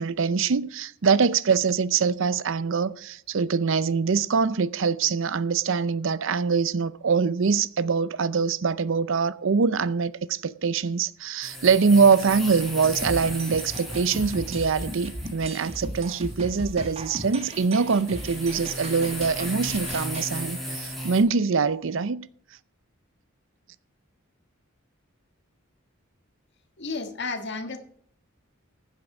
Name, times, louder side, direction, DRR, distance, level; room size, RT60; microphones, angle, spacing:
voice 1, 0.0-22.3, right 5 dB, 65° right, 0.6 m, -24 dB
sound 1, 11.4-21.2, equal, ahead, 5.1 m, -37 dB
sound 2, 12.8-20.3, right 1 dB, 30° right, 1.7 m, -36 dB
voice 2, 26.8-27.8, left 3 dB, 60° left, 1.6 m, -32 dB
15.0 x 7.6 x 4.9 m
head